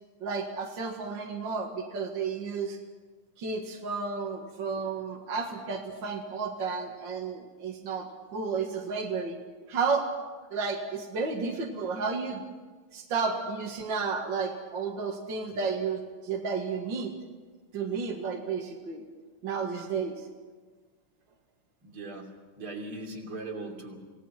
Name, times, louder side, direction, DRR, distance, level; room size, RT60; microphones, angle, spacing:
voice 1, 0.2-2.8 3.4-9.4 9.7-10.1 10.5-12.4 12.9-17.1 17.7-19.0 19.4-20.2, right 5 dB, 60° right, 1 dB, 2.5 m, -32 dB
voice 2, 21.8-22.3 22.6-24.0, right 2 dB, 90° right, 0 dB, 4.0 m, -39 dB
27.5 x 18.0 x 5.9 m, 1.4 s
omnidirectional pair, 2.3 m